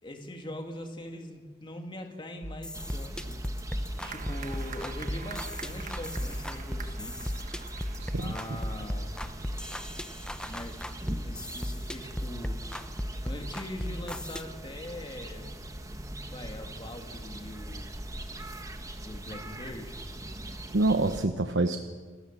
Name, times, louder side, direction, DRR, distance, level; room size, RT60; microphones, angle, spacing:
voice 1, 0.0-3.4 4.0-7.3 8.2-9.1 10.4-10.8 11.2-12.6 13.2-15.6 16.3-18.0 19.0-20.0, left 1 dB, 25° left, 3 dB, 2.2 m, -42 dB
sound 1, 2.4-14.4, equal, 5° left, 0.8 m, -36 dB
sound 2, 2.7-21.2, right 1 dB, 20° right, 1.4 m, -41 dB
sound 3, 4.0-9.5, right 6 dB, 45° right, 1.4 m, -47 dB
voice 2, 8.0-8.4 20.7-21.8, right 2 dB, 80° right, 7 dB, 1.0 m, -26 dB
28.0 x 14.0 x 7.5 m, 1.5 s
head